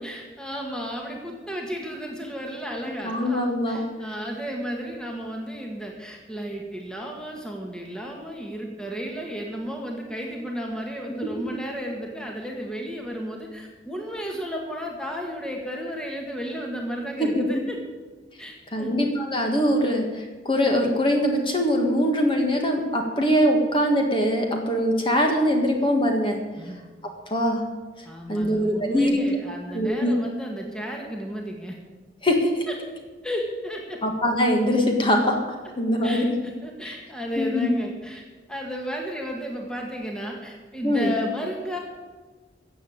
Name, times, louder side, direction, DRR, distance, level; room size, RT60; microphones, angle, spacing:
voice 1, 0.0-17.8 18.4-18.9 26.6-26.8 28.1-31.8 32.7-32.8 33.2-34.0 36.0-38.2 38.5-41.8, equal, 5° left, 0 dB, 1.7 m, -33 dB
voice 2, 3.0-3.8 17.2-17.4 18.7-26.4 27.3-27.6 28.3-29.2 29.7-30.1 32.2-32.7 34.0-35.4 35.8-36.3 36.9-37.0 37.4-37.7 40.8-41.1, equal, 25° left, 2 dB, 1.8 m, -22 dB
14.5 x 7.6 x 8.7 m, 1.3 s
head